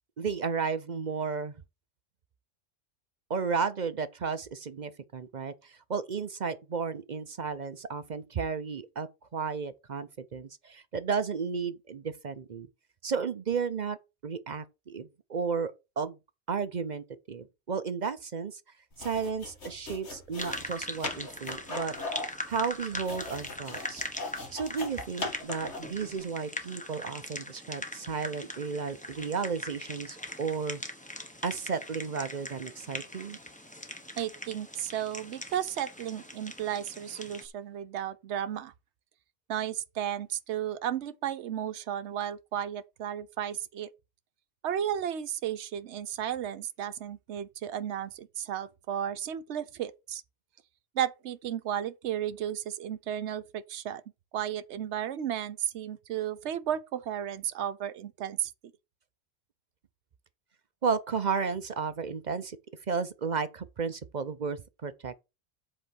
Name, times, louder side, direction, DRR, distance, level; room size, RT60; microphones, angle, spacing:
voice 1, 0.2-1.6 3.3-12.7 13.0-14.0 14.2-16.2 16.5-18.6 19.0-21.9 22.5-24.0 24.5-30.8 31.4-33.4 60.8-62.6 62.9-65.2, right 5 dB, 45° right, 0.6 m, -33 dB
sound 1, 18.9-26.0, left 3 dB, 60° left, 2.3 m, -40 dB
sound 2, 20.4-37.5, left 1 dB, 5° left, 1.0 m, -41 dB
voice 2, 34.2-38.7 39.5-43.9 44.6-50.2 50.9-54.0 54.3-58.5, right 10 dB, 65° right, 1.0 m, -34 dB
7.9 x 4.4 x 6.3 m
omnidirectional pair, 1.3 m